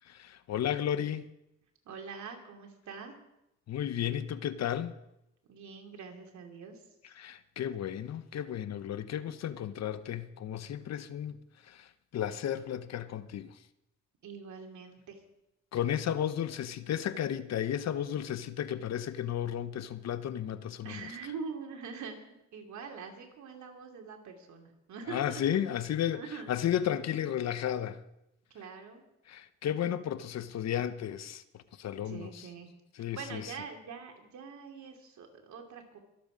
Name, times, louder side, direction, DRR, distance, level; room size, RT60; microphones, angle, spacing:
voice 1, 0.0-1.3 3.7-4.9 7.0-11.4 11.6-13.6 15.7-21.1 25.1-28.0 29.3-32.5 32.9-33.5, left 10 dB, 60° left, 0.8 m, -33 dB
voice 2, 1.8-3.2 5.5-6.8 14.2-15.2 20.8-22.2 22.5-25.6 26.1-26.5 28.5-29.0 32.0-32.7 33.1-36.0, right 5 dB, 70° right, 2.8 m, -44 dB
23.0 x 8.0 x 5.1 m
cardioid pair, 90°, 30 cm